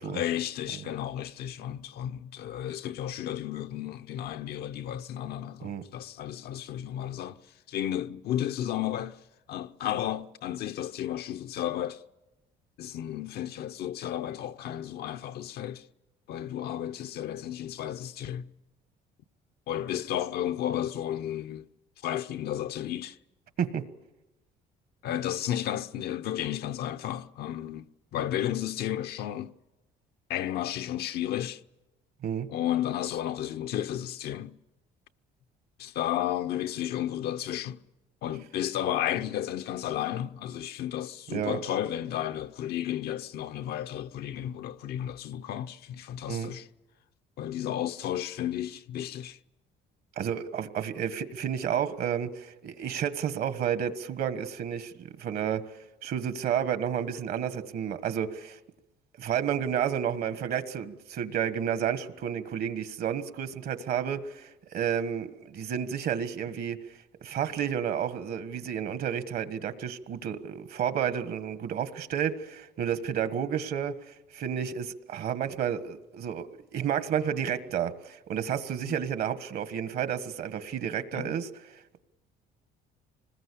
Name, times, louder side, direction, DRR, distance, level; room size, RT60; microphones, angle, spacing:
voice 1, 0.0-7.4 7.7-9.2 9.5-12.0 12.8-15.8 16.3-18.5 19.7-21.7 22.0-23.2 25.0-29.5 30.3-31.6 32.5-34.6 35.8-37.8 38.2-46.7 47.4-49.4 78.9-79.0 81.1-81.4, left 11 dB, 70° left, 0.8 m, -33 dB
voice 2, 50.2-58.6 59.2-66.8 67.2-82.0, right 8 dB, 65° right, 1.5 m, -31 dB
26.0 x 20.0 x 8.5 m
cardioid pair, 110°, 17 cm